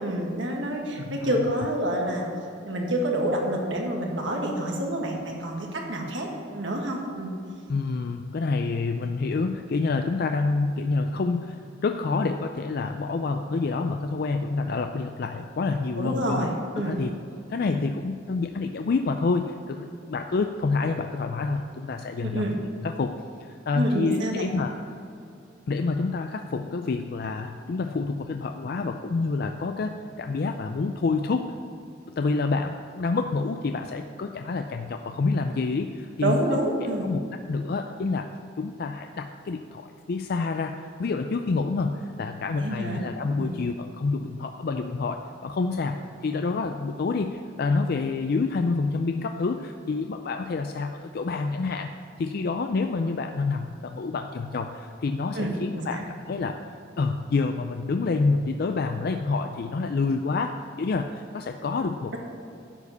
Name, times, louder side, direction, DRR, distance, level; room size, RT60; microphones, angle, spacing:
voice 1, 0.0-2.3 2.6-6.3 6.5-7.3 16.0-17.0 22.2-22.6 23.7-24.5 36.2-37.1 42.6-43.0 43.4-43.5 55.3-56.0, right 1 dB, 70° right, 0 dB, 1.6 m, -28 dB
voice 2, 1.0-1.4 7.7-16.5 16.8-17.1 17.5-22.5 22.8-24.7 25.7-31.6 32.2-36.6 37.0-37.2 37.5-38.3 38.6-51.9 52.2-56.6 57.0-62.2, left 3 dB, 50° left, 6 dB, 0.4 m, -28 dB
11.0 x 5.0 x 6.9 m, 2.6 s
head